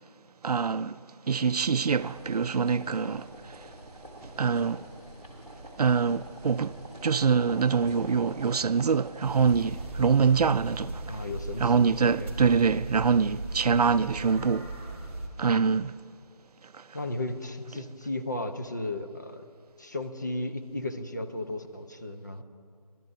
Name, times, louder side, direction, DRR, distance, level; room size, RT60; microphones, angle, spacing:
voice 1, 0.4-1.0 1.2-3.7 4.2-4.9 5.8-11.2 11.6-14.8 15.4-16.0 16.7-16.8, right 5 dB, 75° right, 0.4 m, -25 dB
sound 1, 1.9-9.9, right 1 dB, 10° left, 1.2 m, -45 dB
sound 2, 9.2-15.3, right 2 dB, 20° right, 1.1 m, -37 dB
voice 2, 11.1-11.9 12.2-12.4 12.7-12.8 16.9-19.4 19.8-22.4, left 2 dB, 30° left, 0.6 m, -34 dB
29.5 x 12.5 x 2.6 m
figure-of-eight pair, 170°, 20 cm